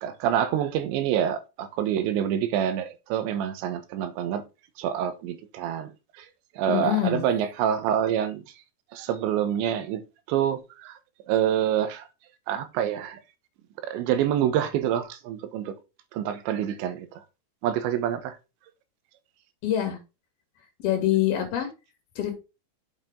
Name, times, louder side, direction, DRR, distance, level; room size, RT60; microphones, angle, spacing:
voice 1, 0.0-4.4 4.8-5.9 6.2-6.3 6.6-8.4 8.9-10.0 10.3-11.0 11.3-12.1 12.5-13.2 13.8-15.7 16.1-17.1 17.6-18.4, right 10 dB, 90° right, 3.3 m, -26 dB
voice 2, 6.7-7.2 19.6-20.0 20.8-21.7 22.2-22.4, left 12 dB, 65° left, 4.0 m, -25 dB
8.1 x 7.2 x 3.6 m
omnidirectional pair, 5.0 m